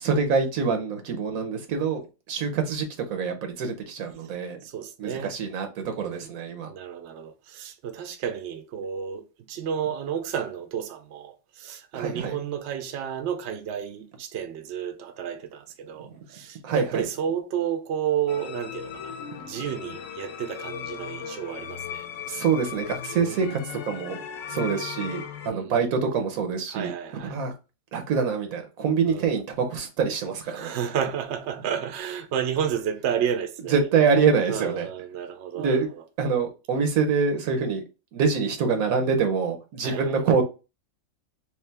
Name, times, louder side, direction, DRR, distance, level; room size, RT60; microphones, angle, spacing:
voice 1, 0.0-2.0 2.3-4.6 5.0-6.7 11.9-12.4 16.0-16.2 16.6-17.1 22.3-24.2 24.5-26.9 27.3-27.5 27.9-30.8 33.7-34.9 35.5-35.9 36.2-37.8 38.1-40.4, right 5 dB, 90° right, 1.3 m, -25 dB
voice 2, 4.3-5.4 5.8-6.3 6.7-19.2 19.5-22.0 23.2-23.5 25.5-25.8 26.7-27.4 29.1-29.3 30.5-33.8 34.5-35.8 39.8-40.1, right 8 dB, 65° right, 0.8 m, -31 dB
sound 1, 18.3-25.5, left 8 dB, 70° left, 0.9 m, -37 dB
3.2 x 3.1 x 3.3 m
omnidirectional pair, 1.4 m